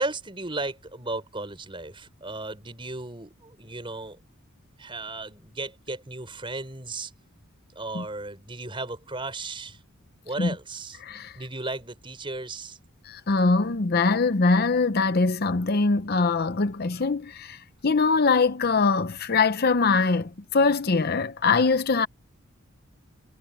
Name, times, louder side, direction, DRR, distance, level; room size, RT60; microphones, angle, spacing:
voice 1, 0.0-4.2 4.8-7.1 7.8-9.8 10.2-11.0 11.4-12.8, right 2 dB, 25° right, 5.9 m, -35 dB
voice 2, 11.0-11.4 13.0-22.1, left 4 dB, 45° left, 0.7 m, -23 dB
head